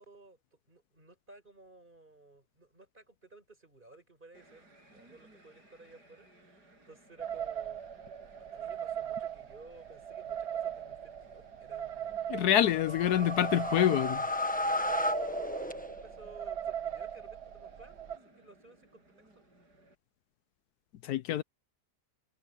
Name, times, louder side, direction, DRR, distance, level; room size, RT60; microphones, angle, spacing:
voice 1, 0.0-4.7 4.9-7.8 8.4-12.4 13.0-13.5 14.6-19.3, right 2 dB, 30° right, 5.7 m, -56 dB
sound 1, 4.3-20.0, right 1 dB, 85° right, 7.4 m, -62 dB
sound 2, 7.2-18.2, right 9 dB, 45° right, 1.1 m, -39 dB
voice 2, 12.3-14.2 21.0-21.4, left 11 dB, 75° left, 1.2 m, -26 dB
sound 3, 12.5-16.3, left 1 dB, 5° left, 1.1 m, -34 dB
omnidirectional pair, 1.7 m